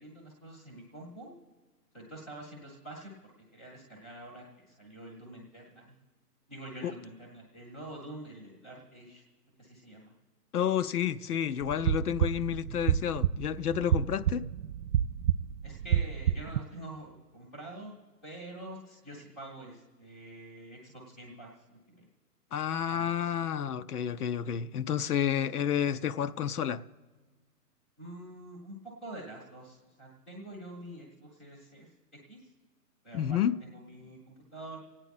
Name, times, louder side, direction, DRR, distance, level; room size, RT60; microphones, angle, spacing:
voice 1, 0.0-1.4 1.9-6.0 6.5-9.2 9.6-10.1 15.6-17.9 18.2-22.1 22.9-23.3 25.4-25.5 28.0-32.5 33.0-34.8, right 1 dB, ahead, 0.6 m, -46 dB
voice 2, 10.5-14.5 22.5-26.8 33.1-33.6, left 9 dB, 65° left, 0.6 m, -30 dB
sound 1, 11.6-16.6, right 10 dB, 70° right, 0.5 m, -29 dB
26.0 x 8.9 x 4.1 m
hypercardioid pair, 150°, 48 cm